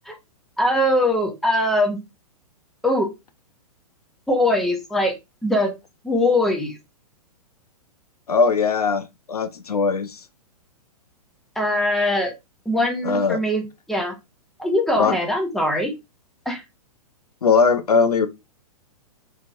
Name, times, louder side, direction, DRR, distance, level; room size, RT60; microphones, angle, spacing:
voice 1, 0.6-2.0 2.8-3.1 4.3-5.1 5.4-5.7 6.0-6.8 11.5-12.3 12.6-14.1 14.6-15.9 16.4-16.6, left 1 dB, ahead, 1.1 m, -21 dB
voice 2, 8.3-10.2 13.0-13.4 15.0-15.1 17.4-18.3, left 5 dB, 75° left, 0.6 m, -20 dB
5.1 x 3.4 x 2.7 m
figure-of-eight pair, 110°, 19 cm